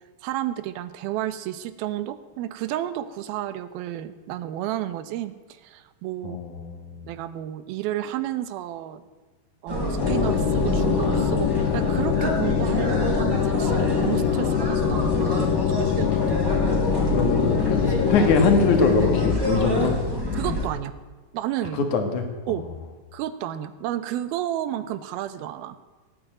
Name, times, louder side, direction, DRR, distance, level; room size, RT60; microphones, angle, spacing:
voice 1, 0.2-6.4 7.0-9.0 9.6-16.1 20.3-20.9 21.3-21.8 22.5-22.7 23.1-25.8, right 12 dB, 80° right, 12 dB, 2.7 m, -31 dB
voice 2, 6.2-7.0 15.7-16.0 17.1-20.0 21.8-22.5, left 4 dB, 60° left, 6 dB, 3.0 m, -23 dB
sound 1, 9.7-20.7, equal, 5° right, 3.5 m, -27 dB
sound 2, 10.0-19.3, left 11 dB, 75° left, 2.2 m, -24 dB
17.5 x 9.2 x 9.0 m, 1.3 s
omnidirectional pair, 4.3 m